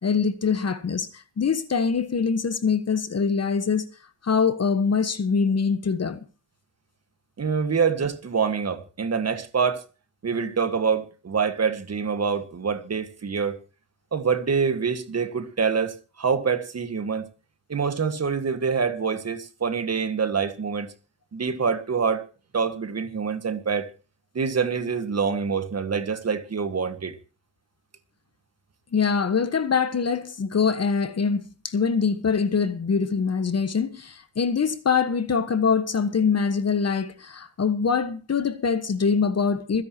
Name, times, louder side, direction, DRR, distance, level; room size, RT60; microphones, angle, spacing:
voice 1, 0.0-3.8 4.2-6.2 28.9-39.8, left 5 dB, 35° left, 1.3 m, -24 dB
voice 2, 7.4-9.8 10.2-13.6 14.1-17.2 17.7-20.9 21.3-22.2 22.5-23.9 24.3-27.2, right 6 dB, 35° right, 1.7 m, -26 dB
26.0 x 10.5 x 2.9 m
cardioid pair, 95°, 44 cm